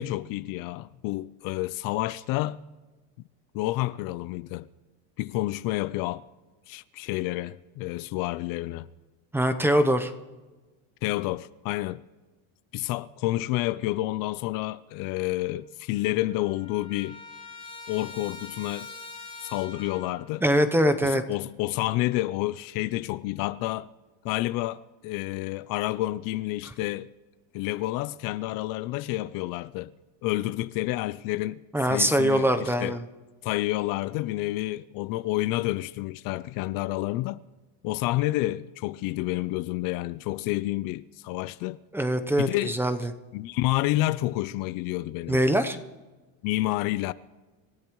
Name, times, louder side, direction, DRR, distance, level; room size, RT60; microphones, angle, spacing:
voice 1, 0.0-2.6 3.5-4.7 5.2-6.2 6.7-8.9 11.0-12.0 12.7-17.2 17.9-18.9 19.4-20.4 21.0-23.9 24.2-27.1 27.5-29.9 30.2-31.6 31.9-33.0 33.4-37.4 37.8-41.8 42.4-42.8 43.3-45.4 46.4-47.1, left 17 dB, 60° left, 0.6 m, -29 dB
voice 2, 9.3-10.1 20.4-21.2 31.7-33.0 41.9-43.1 45.3-45.8, right 1 dB, 5° right, 0.7 m, -23 dB
Trumpet, 15.5-15.6 15.9-20.3, left 3 dB, 15° left, 3.3 m, -44 dB
27.5 x 14.0 x 3.1 m
cardioid pair, 150°, 39 cm